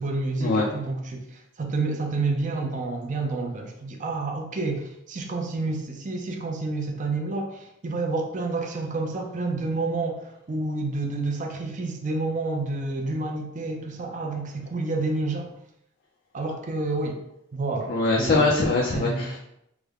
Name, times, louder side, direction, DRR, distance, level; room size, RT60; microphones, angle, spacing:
voice 1, 0.0-15.5 16.3-17.2 17.5-18.5 18.9-19.3, right 3 dB, 40° right, 2 dB, 0.5 m, -29 dB
voice 2, 17.9-19.4, left 3 dB, 45° left, -2 dB, 0.4 m, -22 dB
3.4 x 2.1 x 3.4 m, 0.77 s
head